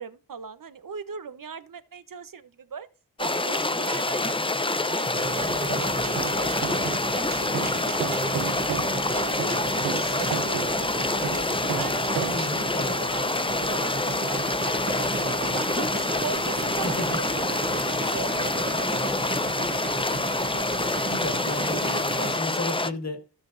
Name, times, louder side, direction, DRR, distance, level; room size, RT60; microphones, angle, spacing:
voice 1, 0.0-2.9 3.2-6.8 7.1-10.6 10.9-11.3 11.8-13.3 13.5-17.6 18.1-19.8, right 6 dB, 55° right, 0.9 m, -39 dB
sound 1, 3.2-22.9, left 2 dB, 15° left, 0.5 m, -27 dB
sound 2, 5.1-22.4, right 2 dB, 25° right, 1.1 m, -33 dB
sound 3, 5.7-12.6, right 9 dB, 75° right, 0.5 m, -34 dB
voice 2, 12.3-13.0 16.8-17.1 21.1-23.2, left 2 dB, 45° left, 2.0 m, -33 dB
16.5 x 6.0 x 2.6 m
wide cardioid pair, 95°, 38 cm